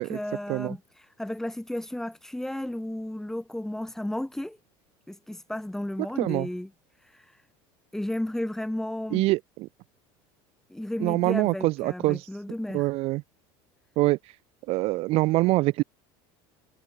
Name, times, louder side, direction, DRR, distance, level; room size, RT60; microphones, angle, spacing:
voice 1, 0.0-4.6 5.1-6.7 7.0-7.4 7.9-9.3 10.7-12.9, left 1 dB, 5° left, 5.0 m, -33 dB
voice 2, 9.1-9.7 11.0-12.3 12.7-13.2 14.0-14.2 14.7-15.8, right 20 dB, 55° right, 1.4 m, -24 dB
cardioid pair, 135°, 12 cm